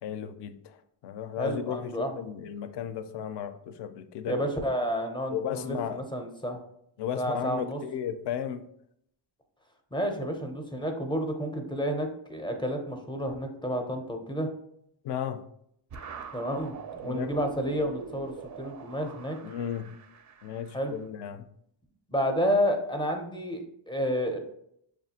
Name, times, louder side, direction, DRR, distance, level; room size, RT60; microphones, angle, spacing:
voice 1, 0.0-4.4 5.3-6.0 7.0-8.7 15.0-15.4 17.0-17.3 19.4-19.9 20.4-21.5, left 9 dB, 55° left, 10 dB, 0.5 m, -35 dB
voice 2, 1.4-2.1 4.3-6.6 7.2-7.8 9.9-14.5 16.3-16.7 17.0-19.4 20.7-20.9 22.1-24.4, equal, 10° left, 3 dB, 0.5 m, -30 dB
sound 1, 15.9-21.0, right 5 dB, 40° right, 0.4 m, -43 dB
6.3 x 2.5 x 2.8 m, 0.72 s
cardioid pair, 115°, 49 cm